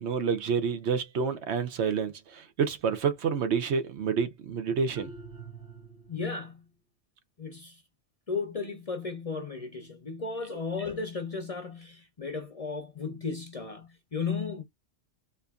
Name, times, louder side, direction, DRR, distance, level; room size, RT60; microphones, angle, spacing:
voice 1, 0.0-2.1 2.6-5.1, right 6 dB, 70° right, 1.0 m, -28 dB
sound 1, 5.0-6.4, right 4 dB, 85° right, 1.5 m, -46 dB
voice 2, 6.1-6.7 7.4-7.8 8.3-14.6, left 4 dB, 40° left, 0.6 m, -35 dB
4.3 x 2.6 x 2.3 m
omnidirectional pair, 1.2 m